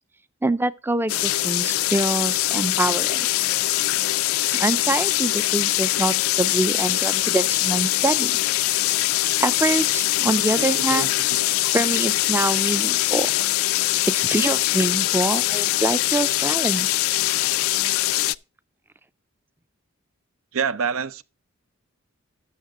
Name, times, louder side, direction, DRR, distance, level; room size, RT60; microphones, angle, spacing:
voice 1, 0.4-3.3 4.5-8.4 9.4-11.1 11.7-13.3 14.1-16.9, right 2 dB, 10° right, 0.4 m, -25 dB
sound 1, 1.1-18.3, left 16 dB, 80° left, 0.4 m, -22 dB
voice 2, 10.6-11.1 20.5-21.2, right 6 dB, 75° right, 0.6 m, -27 dB
13.0 x 6.6 x 3.7 m
head